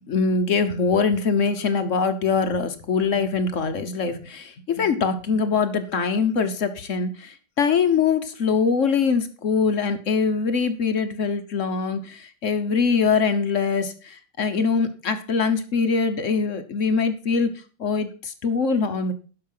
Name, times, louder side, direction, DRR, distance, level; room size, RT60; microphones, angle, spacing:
voice 1, 0.1-19.1, left 5 dB, 50° left, 9 dB, 1.2 m, -23 dB
12.0 x 5.6 x 5.6 m, 0.37 s
omnidirectional pair, 1.9 m